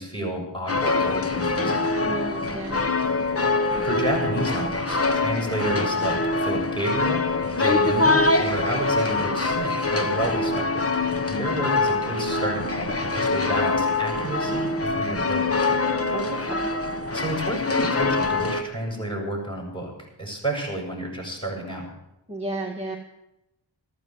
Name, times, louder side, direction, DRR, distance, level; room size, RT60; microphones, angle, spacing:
voice 1, 0.0-1.9 3.8-7.2 7.5-15.6 16.4-16.5 17.1-21.9, right 1 dB, 10° left, 0 dB, 7.8 m, -30 dB
sound 1, 0.7-18.6, left 3 dB, 30° left, 1.2 m, -24 dB
voice 2, 2.0-2.8 16.1-16.7 22.3-23.0, right 1 dB, 15° right, 1 dB, 1.7 m, -33 dB
14.5 x 14.0 x 6.2 m, 0.89 s
wide cardioid pair, 70°, 45 cm